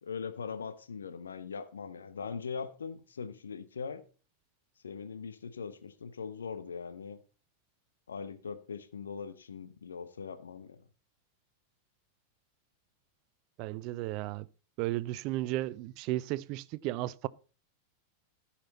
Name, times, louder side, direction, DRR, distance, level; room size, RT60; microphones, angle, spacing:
voice 1, 0.0-4.0 4.8-7.2 8.1-10.8, left 5 dB, 70° left, 0.9 m, -41 dB
voice 2, 13.6-14.5 14.8-17.3, right 16 dB, 40° right, 0.4 m, -34 dB
15.0 x 5.9 x 4.2 m
figure-of-eight pair, 90°, 0 cm